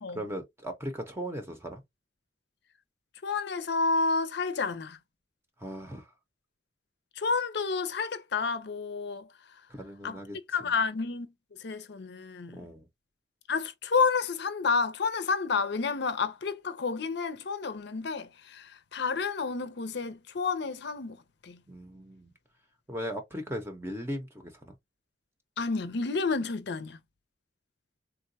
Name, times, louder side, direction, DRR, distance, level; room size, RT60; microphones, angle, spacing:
voice 1, 0.1-1.8 5.6-6.1 9.7-10.7 12.5-12.9 21.7-22.3 22.9-24.7, equal, 15° right, 0.7 m, -38 dB
voice 2, 3.2-5.0 7.2-9.3 10.0-10.2 10.5-11.3 11.6-12.7 13.5-21.2 21.4-21.6 25.6-27.0, left 4 dB, 65° left, 0.6 m, -30 dB
3.7 x 2.3 x 2.6 m
head